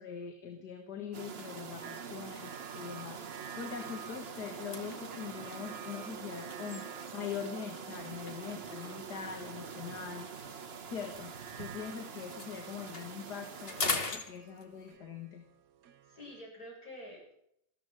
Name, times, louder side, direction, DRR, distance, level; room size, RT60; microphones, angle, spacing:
voice 1, 0.0-6.9 7.1-10.5 10.9-15.4, left 7 dB, 75° left, 4 dB, 2.3 m, -43 dB
sound 1, 1.1-14.1, right 6 dB, 40° right, 1.2 m, -45 dB
sound 2, 1.8-16.4, right 9 dB, 65° right, 1.3 m, -53 dB
sound 3, 3.5-7.4 8.3-11.8 12.1-15.0, left 3 dB, 35° left, 1.8 m, -42 dB
voice 2, 16.0-17.4, equal, 60° left, -2 dB, 7.8 m, -48 dB
14.0 x 13.5 x 7.7 m, 0.76 s
omnidirectional pair, 1.8 m